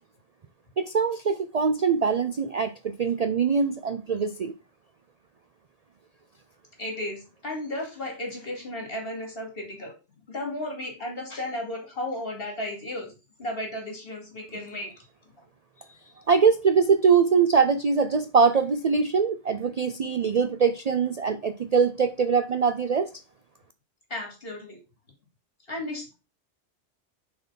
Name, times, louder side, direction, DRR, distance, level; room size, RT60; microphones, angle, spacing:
voice 1, 0.8-4.5 16.3-23.1, right 5 dB, 50° right, 0.5 m, -23 dB
voice 2, 6.8-9.9 10.3-13.1 13.4-14.9 15.8-16.1 24.1-24.8 25.7-26.2, left 1 dB, 55° left, 2.8 m, -34 dB
6.5 x 4.5 x 5.7 m
omnidirectional pair, 1.2 m